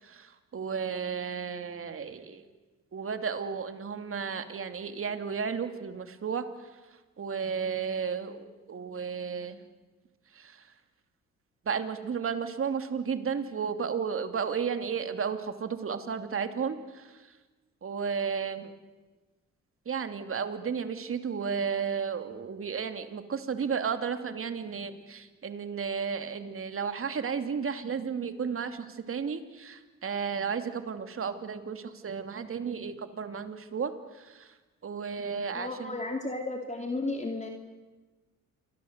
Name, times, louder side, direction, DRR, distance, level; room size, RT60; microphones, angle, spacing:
voice 1, 0.0-2.4 2.9-6.5 7.2-9.6 10.3-10.7 11.6-17.2 17.8-18.7 19.9-34.5 34.8-36.0, right 6 dB, 45° right, 8 dB, 2.8 m, -33 dB
voice 2, 35.5-37.5, left 2 dB, 25° left, 3 dB, 2.9 m, -33 dB
28.5 x 23.5 x 8.2 m, 1.2 s
cardioid pair, 90°, 30 cm